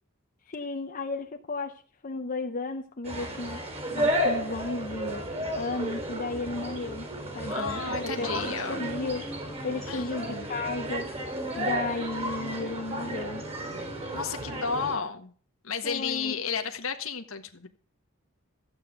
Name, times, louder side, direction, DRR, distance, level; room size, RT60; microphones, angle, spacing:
voice 1, 0.5-3.6 4.0-5.2 5.5-7.1 7.3-9.3 9.6-11.1 11.6-13.4 15.8-16.4, left 3 dB, 40° left, 4 dB, 0.8 m, -34 dB
sound 1, 3.0-15.0, equal, 30° right, 3.8 m, -33 dB
voice 2, 7.5-8.8 9.9-10.5 14.1-15.3 15.6-17.7, left 5 dB, 70° left, 6 dB, 1.5 m, -33 dB
14.5 x 8.8 x 5.3 m, 0.43 s
head